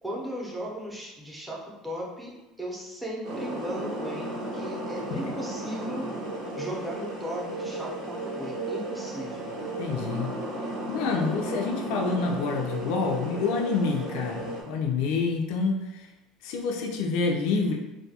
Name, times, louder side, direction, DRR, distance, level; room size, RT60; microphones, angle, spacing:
voice 1, 0.0-6.1 6.6-9.5, equal, 10° right, -3 dB, 0.7 m, -37 dB
sound 1, 3.2-14.6, right 1 dB, 70° right, 0.7 m, -34 dB
voice 2, 9.8-10.3 10.9-16.1 16.4-17.8, left 4 dB, 75° left, 1 dB, 0.4 m, -27 dB
2.3 x 2.2 x 2.7 m, 1.0 s
supercardioid pair, 110°, 0 cm